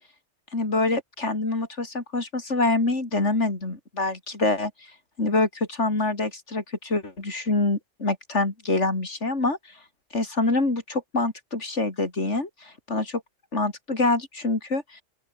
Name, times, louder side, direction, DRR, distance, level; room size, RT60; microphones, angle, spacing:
voice 1, 0.5-4.7 5.2-9.6 10.1-13.2 13.5-15.0, left 2 dB, 85° left, 4.3 m, -25 dB
open air
omnidirectional pair, 1.2 m